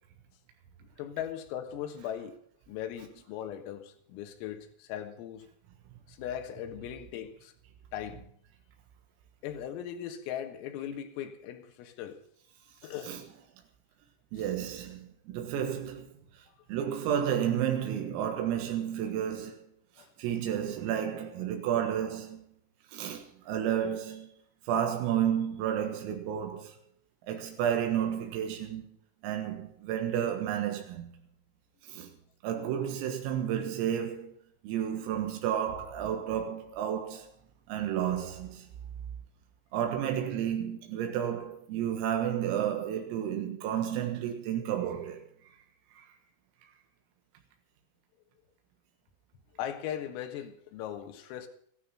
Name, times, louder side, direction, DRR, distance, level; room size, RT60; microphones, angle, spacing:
voice 1, 0.8-2.4 2.7-5.5 6.1-7.5 7.9-8.2 9.4-12.2 12.8-13.2 14.4-14.5 20.0-20.1 49.6-51.5, left 10 dB, 85° left, 4.1 m, -39 dB
voice 2, 14.3-16.1 16.7-19.6 20.2-22.4 22.9-24.3 24.7-26.8 27.3-28.9 29.2-31.1 31.9-32.1 32.4-34.4 34.6-37.3 37.7-38.7 39.7-45.5 46.0-46.1, right 9 dB, 90° right, 4.2 m, -31 dB
14.5 x 13.0 x 5.7 m
omnidirectional pair, 5.9 m